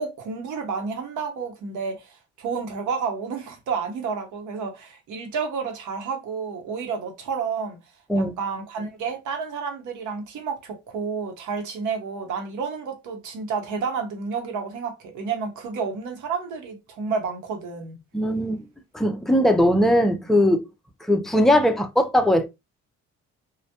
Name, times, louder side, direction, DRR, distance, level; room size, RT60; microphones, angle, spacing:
voice 1, 0.0-7.8 8.1-17.9, right 5 dB, 80° right, 0.8 m, -30 dB
voice 2, 18.1-18.6 18.9-20.7 21.1-22.5, equal, ahead, 0.4 m, -19 dB
2.1 x 2.1 x 2.8 m
cardioid pair, 90°, 30 cm